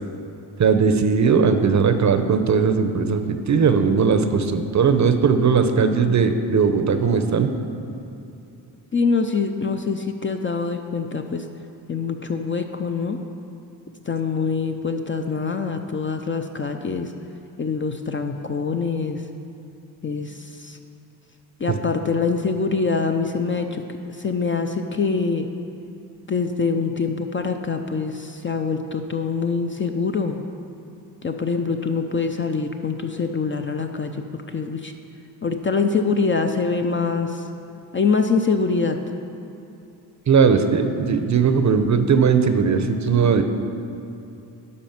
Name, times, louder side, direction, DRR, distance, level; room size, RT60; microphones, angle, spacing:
voice 1, 0.6-7.5 40.3-43.4, right 5 dB, 35° right, 8 dB, 0.7 m, -18 dB
voice 2, 8.9-11.5 11.9-13.2 14.1-17.1 17.6-19.2 20.0-20.8 21.6-23.8 24.1-25.5 26.3-30.4 31.2-34.9 35.4-37.5 37.9-39.0, left 4 dB, 25° left, 5 dB, 0.5 m, -24 dB
11.0 x 4.2 x 5.8 m, 2.8 s
supercardioid pair, 75°, 48 cm